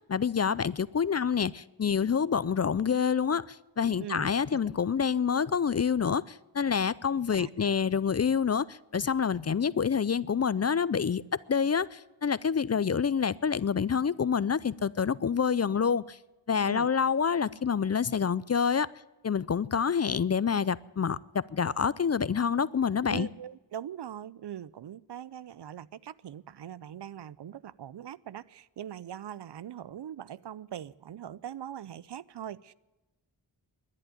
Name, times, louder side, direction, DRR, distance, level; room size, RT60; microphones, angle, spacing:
voice 1, 0.1-11.2 11.5-16.2 16.5-18.9 19.2-23.3, left 6 dB, 35° left, 0.5 m, -27 dB
voice 2, 7.3-7.7 16.6-16.9 23.1-32.7, right 10 dB, 65° right, 0.6 m, -41 dB
11.5 x 10.5 x 9.9 m
cardioid pair, 50°, 44 cm